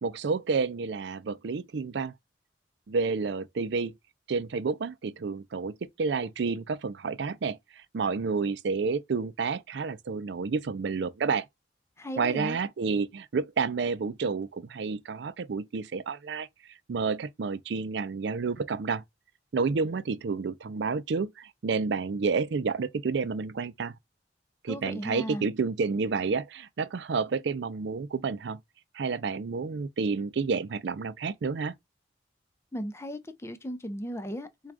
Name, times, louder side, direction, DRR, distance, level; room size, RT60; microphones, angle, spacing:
voice 1, 0.0-2.1 2.9-3.9 4.3-11.5 12.2-16.5 16.9-19.0 19.5-23.9 24.6-28.6 28.9-31.7, right 4 dB, 65° right, 0.4 m, -30 dB
voice 2, 12.0-12.6 24.7-25.5 32.7-34.7, equal, 15° left, 0.5 m, -36 dB
4.6 x 2.3 x 2.4 m
head